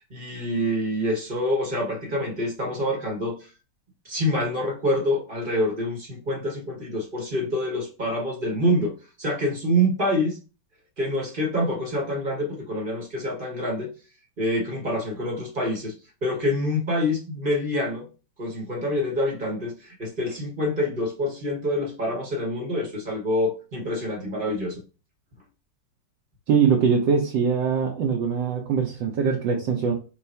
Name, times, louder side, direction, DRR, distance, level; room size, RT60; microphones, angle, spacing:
voice 1, 0.1-3.5 4.0-10.4 11.0-13.9 14.4-15.9 16.2-18.1 18.4-24.8, equal, 35° right, 0 dB, 1.0 m, -26 dB
voice 2, 26.5-29.9, right 6 dB, 75° right, 1 dB, 1.4 m, -22 dB
4.6 x 2.4 x 4.1 m, 0.34 s
omnidirectional pair, 2.1 m